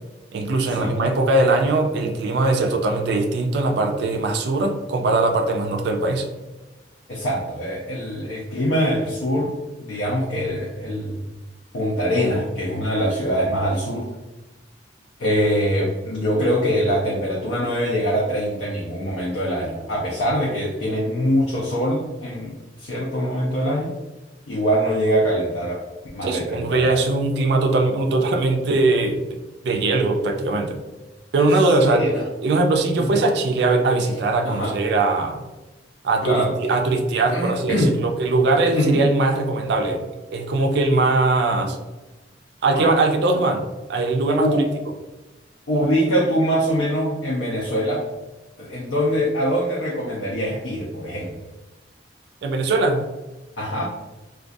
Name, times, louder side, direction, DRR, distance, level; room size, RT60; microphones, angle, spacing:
voice 1, 0.3-6.3 26.2-29.2 29.6-30.8 31.3-32.1 32.4-35.4 36.0-41.8 42.6-44.6 52.4-53.1, right 2 dB, 65° right, 3 dB, 0.3 m, -21 dB
voice 2, 7.1-9.5 9.8-11.2 11.7-14.1 15.2-23.9 24.5-25.8 26.1-27.0 31.4-31.5 31.8-32.2 33.0-33.2 34.4-34.7 36.2-36.5 37.3-38.0 38.7-39.0 42.7-43.0 44.4-44.6 45.7-48.0 48.6-51.3 53.6-53.9, equal, 80° left, -4 dB, 0.5 m, -23 dB
2.3 x 2.2 x 2.5 m, 1.1 s
head